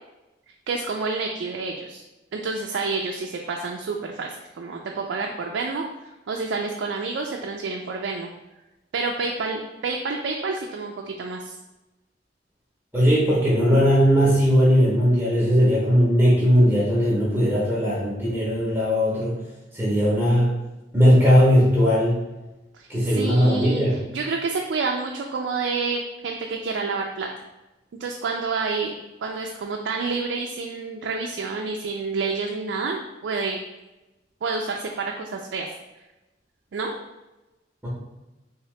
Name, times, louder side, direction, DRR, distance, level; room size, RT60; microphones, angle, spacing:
voice 1, 0.7-2.0 2.3-5.8 6.3-8.3 8.9-11.5 22.7-27.3 28.0-28.9 29.2-33.6 34.4-35.7 36.7-36.9, right 4 dB, 80° right, 1 dB, 0.4 m, -28 dB
voice 2, 12.9-19.3 19.7-20.5 20.9-22.2 22.9-24.0 37.8-37.9, equal, 10° right, -7 dB, 0.7 m, -18 dB
3.5 x 2.8 x 3.1 m, 1.0 s
head